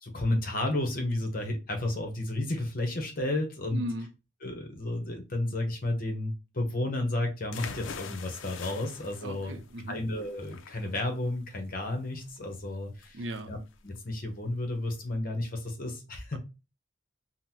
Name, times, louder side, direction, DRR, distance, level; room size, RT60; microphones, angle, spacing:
voice 1, 0.0-3.8 4.4-9.6 9.9-13.2 13.5-13.6 13.8-16.4, left 1 dB, 45° left, 0.8 m, -32 dB
voice 2, 3.7-4.1 9.2-10.0 13.1-13.5 16.3-16.4, right 1 dB, 70° right, 0.5 m, -37 dB
sound 1, 7.5-15.2, left 6 dB, 85° left, 0.4 m, -45 dB
3.7 x 2.1 x 2.8 m
head